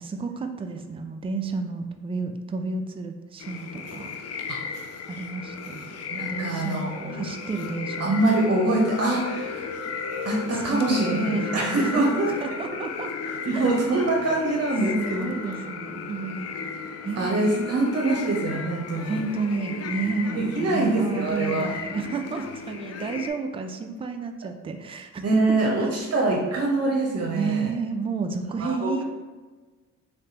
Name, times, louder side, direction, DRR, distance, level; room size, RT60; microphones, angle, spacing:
voice 1, 0.0-4.4 5.1-6.0 6.3-8.2 9.6-9.8 10.5-13.1 13.5-13.7 15.0-16.5 17.0-17.8 19.0-25.4 25.8-26.0 27.3-29.0, right 4 dB, 20° right, 6 dB, 0.3 m, -31 dB
sound 1, 3.4-23.3, left 5 dB, 55° left, 0.5 m, -35 dB
voice 2, 6.1-7.2 8.0-9.6 10.2-12.3 13.5-15.3 17.2-19.2 20.3-21.7 25.2-27.7 28.6-28.9, right 2 dB, 55° right, -3 dB, 0.8 m, -24 dB
3.3 x 3.3 x 2.8 m, 1.3 s
cardioid pair, 85°, 31 cm